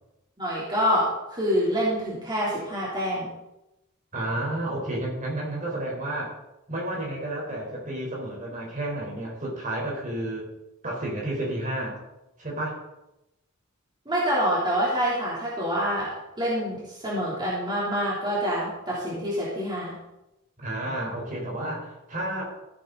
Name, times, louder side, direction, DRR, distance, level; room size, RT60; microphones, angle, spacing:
voice 1, 0.4-3.3 14.1-20.0, equal, 20° right, -7 dB, 3.5 m, -26 dB
voice 2, 4.1-6.3 6.7-10.5 10.8-12.0 12.4-12.8 20.6-22.4, right 1 dB, 40° right, -3 dB, 4.3 m, -31 dB
16.0 x 8.9 x 4.1 m, 0.93 s
head